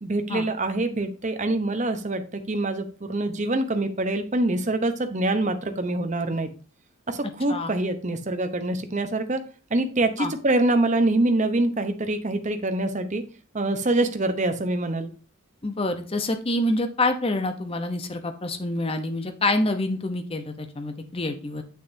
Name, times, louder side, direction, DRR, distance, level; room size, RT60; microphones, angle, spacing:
voice 1, 0.0-6.5 7.1-9.4 9.7-13.2 13.5-15.1, right 2 dB, 35° right, 8 dB, 0.7 m, -25 dB
voice 2, 15.6-21.6, left 2 dB, 25° left, 6 dB, 0.7 m, -27 dB
8.0 x 6.4 x 2.7 m, 0.36 s
head